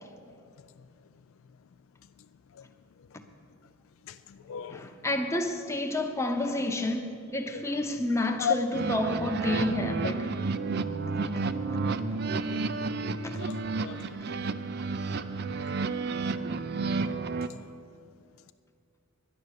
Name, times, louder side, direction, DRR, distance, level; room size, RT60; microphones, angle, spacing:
voice 1, 4.1-4.9 7.5-7.6 8.4-8.6 12.0-12.1 12.3-12.6 13.0-14.2 14.5-14.6 15.2-15.3 17.0-17.2, left 8 dB, 65° left, 0.3 m, -35 dB
voice 2, 4.7-10.3 13.2-13.4, left 1 dB, 15° left, 0.8 m, -30 dB
sound 1, 8.7-17.5, right 4 dB, 50° right, 0.5 m, -31 dB
10.5 x 10.5 x 6.5 m
head